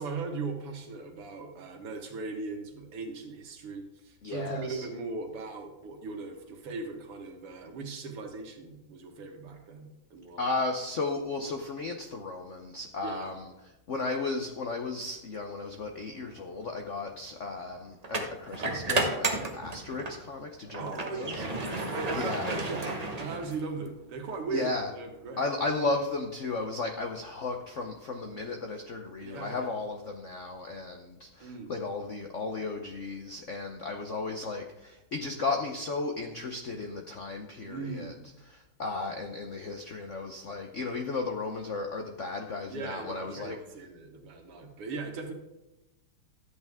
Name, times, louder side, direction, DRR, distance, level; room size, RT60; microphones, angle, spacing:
voice 1, 0.0-10.5 13.0-13.3 20.7-25.4 29.2-29.8 31.4-31.7 37.7-38.3 42.7-45.3, right 4 dB, 85° right, 3 dB, 2.4 m, -38 dB
voice 2, 4.2-4.9 10.4-21.4 22.1-22.5 24.5-24.9 25.4-38.1 38.5-43.6, left 3 dB, 70° left, 3 dB, 0.7 m, -35 dB
sound 1, 16.0-16.2 18.0-20.2 20.7-23.9, right 2 dB, 30° right, 0.6 m, -32 dB
13.0 x 8.3 x 3.6 m, 0.97 s
omnidirectional pair, 2.4 m